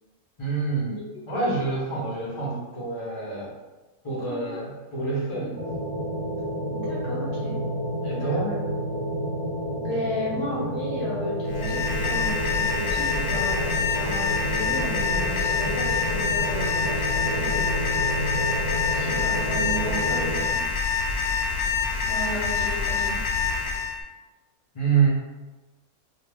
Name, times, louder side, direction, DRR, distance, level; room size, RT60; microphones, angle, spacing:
voice 1, 0.4-1.0 1.3-3.5 4.0-5.6 8.0-8.5 24.7-25.1, right 4 dB, 35° left, -5 dB, 0.5 m, -26 dB
voice 2, 4.2-4.6 6.7-7.6 8.2-8.5 9.7-17.9 18.9-20.6 22.1-23.2, equal, 55° left, -6 dB, 0.8 m, -34 dB
sound 1, 5.6-20.5, equal, 65° right, 0.8 m, -30 dB
Alarm, 11.5-24.0, left 5 dB, 90° left, 1.1 m, -26 dB
2.3 x 2.3 x 3.3 m, 1.2 s
omnidirectional pair, 1.5 m